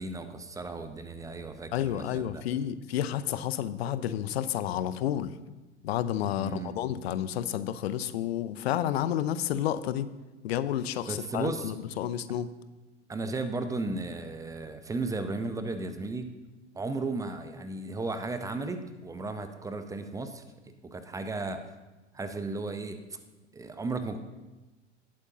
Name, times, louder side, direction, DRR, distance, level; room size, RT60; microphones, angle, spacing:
voice 1, 0.0-2.4 6.3-6.8 11.1-11.7 13.1-16.3 16.7-20.4 20.8-21.6 22.1-23.2 23.5-24.2, right 3 dB, 10° right, 9 dB, 0.7 m, -35 dB
voice 2, 1.7-5.4 5.8-10.1 10.4-12.5, left 11 dB, 60° left, 15 dB, 0.6 m, -30 dB
18.0 x 8.1 x 2.8 m, 1.1 s
figure-of-eight pair, 90°, 36 cm